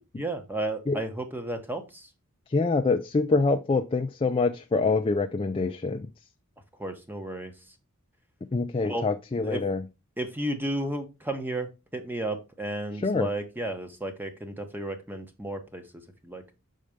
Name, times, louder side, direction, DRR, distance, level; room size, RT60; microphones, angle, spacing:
voice 1, 0.2-2.1 6.8-7.5 8.8-9.0 9.4-9.6 10.2-16.4, right 1 dB, 10° right, 1.1 m, -33 dB
voice 2, 2.5-6.0 8.5-9.8 13.0-13.3, left 3 dB, 25° left, 0.4 m, -25 dB
6.5 x 4.3 x 5.0 m
head